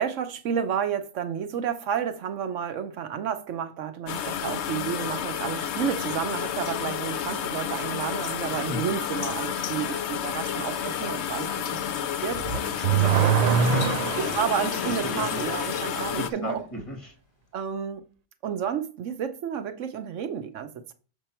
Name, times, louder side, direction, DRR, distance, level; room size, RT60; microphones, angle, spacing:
voice 1, 0.0-12.0 12.2-12.4 13.2-13.6 14.2-16.6 17.5-18.0 18.4-20.9, right 8 dB, 80° right, 1.1 m, -31 dB
sound 1, 4.1-16.3, left 9 dB, 65° left, 0.9 m, -30 dB
voice 2, 8.5-8.8 12.5-13.2 13.6-13.9 14.8-15.3 16.1-17.1, equal, 25° left, 2.2 m, -35 dB
Car / Accelerating revving vroom, 12.3-14.5, right 7 dB, 60° right, 0.4 m, -23 dB
Sink (filling or washing), 13.0-17.0, left 2 dB, 45° left, 1.6 m, -38 dB
6.9 x 5.1 x 4.3 m
omnidirectional pair, 1.3 m